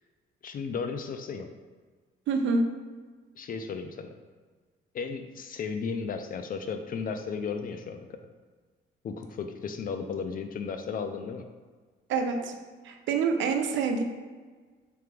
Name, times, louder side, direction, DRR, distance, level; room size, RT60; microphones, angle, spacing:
voice 1, 0.4-1.5 3.4-4.1 4.9-8.2 9.0-11.5, left 5 dB, 45° left, 7 dB, 0.4 m, -34 dB
voice 2, 2.3-2.6 12.1-12.6 12.8-14.0, right 4 dB, 75° right, 5 dB, 0.5 m, -26 dB
3.5 x 3.3 x 3.3 m, 1.4 s
cardioid pair, 90°, 20 cm